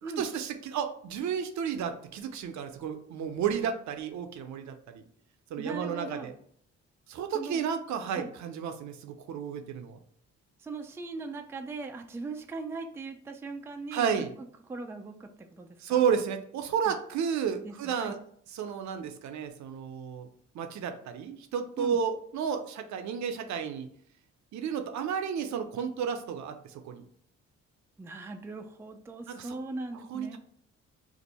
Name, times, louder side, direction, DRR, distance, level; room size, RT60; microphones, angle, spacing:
voice 1, 0.0-5.0 5.5-6.3 7.1-10.0 13.9-14.3 15.8-18.2 18.5-20.3 20.5-23.9 24.5-27.0 29.3-29.6 30.1-30.4, right 7 dB, 70° right, 7 dB, 0.5 m, -32 dB
voice 2, 5.6-6.3 7.3-7.6 8.1-8.3 10.6-14.3 14.7-16.0 16.9-17.0 17.6-18.1 21.8-22.0 28.0-30.4, right 3 dB, 10° right, 5 dB, 0.3 m, -39 dB
2.6 x 2.5 x 4.1 m, 0.63 s
cardioid pair, 90°, 30 cm